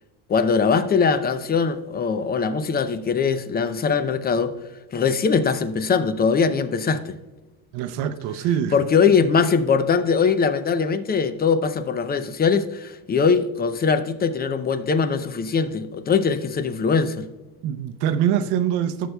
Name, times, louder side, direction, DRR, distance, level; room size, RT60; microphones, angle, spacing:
voice 1, 0.3-4.5 4.9-7.2 8.7-17.3, left 5 dB, 25° left, 0.5 m, -21 dB
voice 2, 7.7-8.8 17.6-19.1, right 9 dB, 70° right, 0.8 m, -24 dB
14.0 x 6.6 x 2.3 m
cardioid pair, 120°, 41 cm